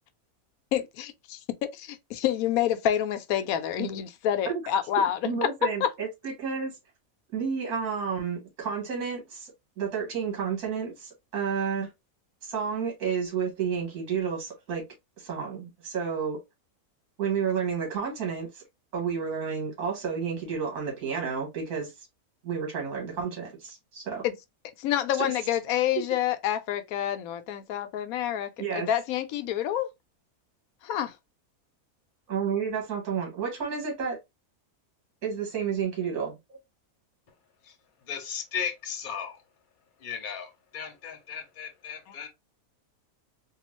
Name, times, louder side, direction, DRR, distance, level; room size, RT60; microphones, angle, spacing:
voice 1, 0.7-1.4 1.7-5.5 5.8-5.9 24.2-24.3 24.8-29.9 30.8-31.1 42.1-42.2, left 10 dB, 75° left, 1.0 m, -28 dB
voice 2, 5.2-6.8 7.3-9.5 9.8-11.9 12.4-14.9 15.2-16.4 17.2-18.6 18.9-22.1 22.4-24.2 25.2-25.3 28.6-28.9 32.3-34.2 35.2-36.6, right 6 dB, 75° right, 1.7 m, -31 dB
voice 3, 38.1-39.4 40.0-42.3, left 7 dB, 40° left, 0.8 m, -36 dB
3.6 x 2.3 x 3.0 m
omnidirectional pair, 1.6 m